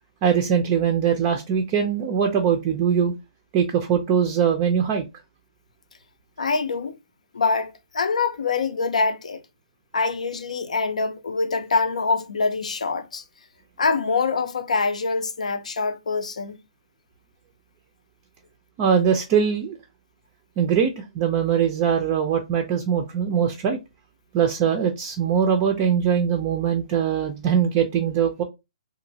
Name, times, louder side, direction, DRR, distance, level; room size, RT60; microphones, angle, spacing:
voice 1, 0.2-3.1 3.5-5.0 18.8-19.8 20.6-23.8 24.3-28.4, right 7 dB, 25° right, 0.4 m, -22 dB
voice 2, 6.4-6.9 7.3-9.4 9.9-13.2 13.8-16.6, left 4 dB, 85° left, 0.6 m, -24 dB
2.9 x 2.6 x 2.7 m
hypercardioid pair, 160°, 4 cm